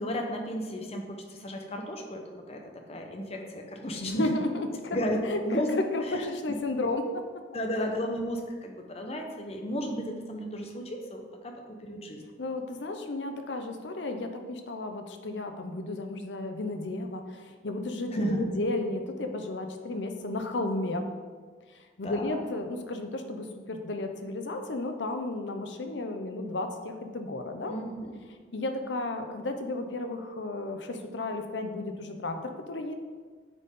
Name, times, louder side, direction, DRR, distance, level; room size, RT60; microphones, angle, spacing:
voice 1, 0.0-2.2 2.5-2.6 2.9-4.4 4.9-5.7 6.1-6.2 7.5-12.2 18.1-18.5 22.0-22.4 27.7-28.1, equal, 35° left, 2 dB, 0.9 m, -33 dB
voice 2, 4.0-7.2 12.4-21.1 22.0-27.8 28.5-32.9, left 2 dB, 90° left, 6 dB, 0.7 m, -33 dB
9.3 x 4.1 x 3.6 m, 1.5 s
head